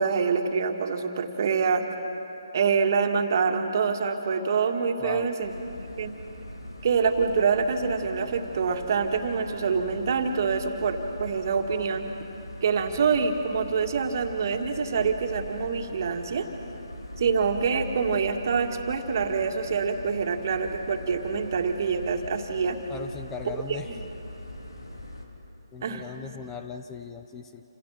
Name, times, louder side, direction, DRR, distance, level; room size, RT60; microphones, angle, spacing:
voice 1, 0.0-1.8 2.5-5.5 6.0-6.2 6.8-12.1 12.6-16.5 17.2-22.8 23.9-24.0 25.8-26.0, right 5 dB, 45° right, 4 dB, 2.3 m, -26 dB
voice 2, 5.0-5.3 22.9-24.0 25.7-27.6, left 6 dB, 15° left, 7 dB, 0.8 m, -38 dB
sound 1, 5.4-25.3, left 1 dB, 90° left, 4.0 m, -41 dB
28.5 x 28.5 x 6.0 m, 2.9 s
figure-of-eight pair, 145°, 2 cm